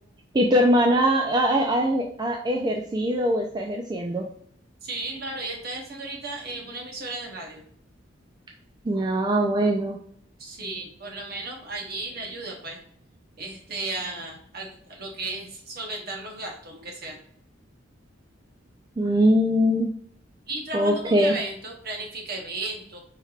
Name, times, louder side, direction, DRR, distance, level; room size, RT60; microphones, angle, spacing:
voice 1, 0.3-4.3 8.8-10.0 19.0-19.9 20.7-21.4, equal, 20° right, 1 dB, 0.4 m, -22 dB
voice 2, 4.8-7.6 10.4-12.8 13.4-17.2 20.5-23.0, right 2 dB, 55° right, 1 dB, 1.0 m, -34 dB
4.4 x 3.2 x 2.4 m, 0.63 s
head